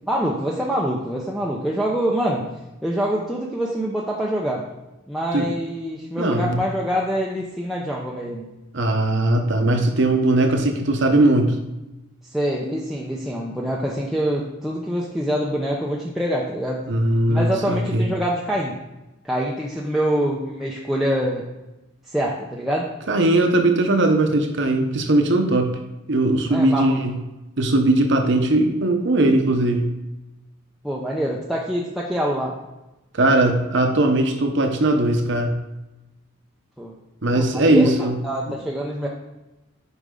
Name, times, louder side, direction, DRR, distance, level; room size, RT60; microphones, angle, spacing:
voice 1, 0.1-2.5 2.8-4.6 5.1-8.5 12.3-16.8 17.3-18.8 19.2-21.5 22.1-22.9 26.5-27.0 30.8-32.6 36.8-37.0 37.3-39.1, equal, ahead, -4 dB, 0.6 m, -25 dB
voice 2, 6.2-6.6 8.7-11.5 16.9-18.1 23.1-25.8 26.1-27.2 27.6-29.9 33.2-35.5 37.2-38.2, right 1 dB, 60° right, 4 dB, 0.9 m, -19 dB
8.2 x 5.3 x 3.8 m, 0.99 s
head